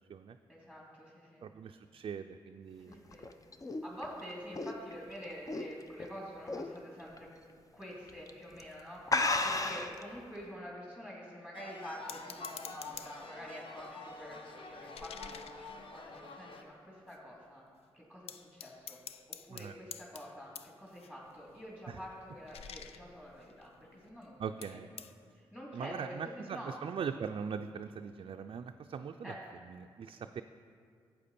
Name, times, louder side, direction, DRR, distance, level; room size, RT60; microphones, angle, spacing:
voice 1, 0.5-1.5 2.9-3.3 3.8-7.3 7.7-17.6 17.9-19.0 19.5-24.4 25.5-26.7 29.2-29.4, equal, 15° left, -5 dB, 2.6 m, -47 dB
voice 2, 1.4-3.1 19.5-19.8 21.9-22.0 24.4-24.9 25.7-30.4, right 6 dB, 55° right, 5 dB, 0.4 m, -41 dB
sound 1, 2.9-6.1 6.5-6.8 7.2-7.3 8.1-8.3 8.6-8.7 9.1-10.0, left 3 dB, 35° left, 0.7 m, -33 dB
sound 2, 11.5-16.6, left 3 dB, 55° left, 1.1 m, -48 dB
sound 3, 12.1-13.4 13.8-16.6 17.1-17.2 17.4-17.8 18.3-24.3 24.6-25.1, left 8 dB, 75° left, 0.5 m, -50 dB
11.5 x 8.0 x 4.2 m, 2.1 s
supercardioid pair, 45°, 10 cm